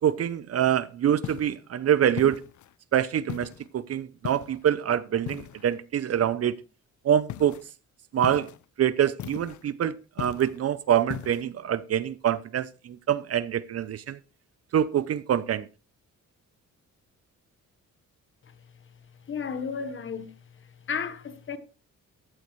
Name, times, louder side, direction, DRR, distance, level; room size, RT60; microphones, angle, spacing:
voice 1, 0.0-2.4 2.9-3.5 3.7-6.5 7.0-7.6 8.1-8.5 8.8-14.2 14.7-15.7, right 10 dB, 50° right, 0.6 m, -25 dB
sound 1, 1.2-1.6 2.2-2.7 3.3-3.7 4.2-4.7 5.3-5.8 7.3-7.6 8.2-8.6 9.2-9.7 10.2-10.6 11.1-11.4, left 11 dB, 65° left, 0.6 m, -38 dB
voice 2, 19.3-20.3 20.9-21.6, left 6 dB, 40° left, 1.2 m, -32 dB
13.5 x 12.0 x 3.1 m
wide cardioid pair, 175°, 31 cm